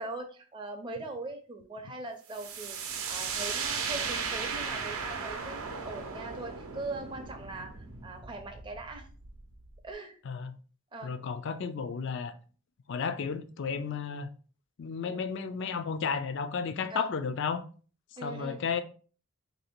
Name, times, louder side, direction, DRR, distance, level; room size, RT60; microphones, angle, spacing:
voice 1, 0.0-9.1 9.8-10.2 10.9-11.1 15.1-15.2 16.9-17.1 18.2-18.6, right 2 dB, 20° right, 0.5 m, -41 dB
sound 1, 2.3-9.9, right 5 dB, 70° right, 0.6 m, -36 dB
voice 2, 10.3-10.6 11.0-12.4 12.9-14.3 14.8-17.6 18.2-18.8, left 6 dB, 55° left, 0.4 m, -33 dB
2.8 x 2.7 x 4.3 m
head